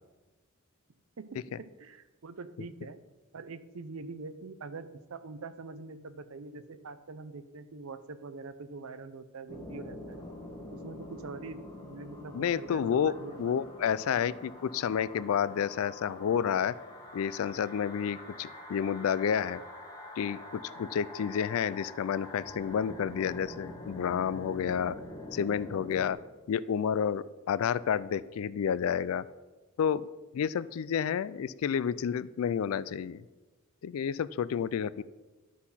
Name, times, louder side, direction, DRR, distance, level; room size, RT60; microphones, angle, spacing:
voice 1, 1.2-3.0 3.3-10.3 10.7-13.7, right 4 dB, 70° right, 12 dB, 0.6 m, -44 dB
sound 1, 9.5-26.1, left 1 dB, 15° left, 1.4 m, -46 dB
voice 2, 12.3-16.7 17.1-19.6 20.2-25.0 25.3-26.2 26.5-29.2 29.8-30.1 30.3-33.2 33.8-35.0, left 8 dB, 70° left, 17 dB, 0.3 m, -30 dB
12.0 x 4.2 x 5.6 m, 1.2 s
head